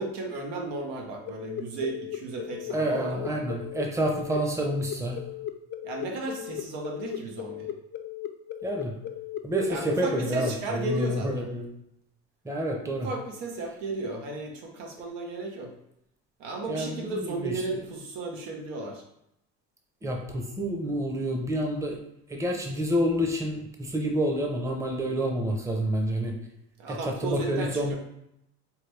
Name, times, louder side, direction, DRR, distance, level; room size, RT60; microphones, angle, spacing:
voice 1, 0.0-3.4 4.3-4.4 5.8-7.7 9.7-11.5 13.0-15.7 16.4-19.0 26.8-28.0, right 3 dB, 90° right, 1 dB, 1.0 m, -34 dB
sound 1, 1.3-11.1, left 11 dB, 35° left, 0.4 m, -37 dB
voice 2, 2.7-5.2 8.6-8.9 9.4-11.7 12.4-13.1 16.7-17.5 20.0-22.0 22.3-26.3 26.9-27.9, right 1 dB, 10° right, 2 dB, 0.7 m, -28 dB
4.7 x 2.2 x 3.3 m, 0.79 s
cardioid pair, 100°, 32 cm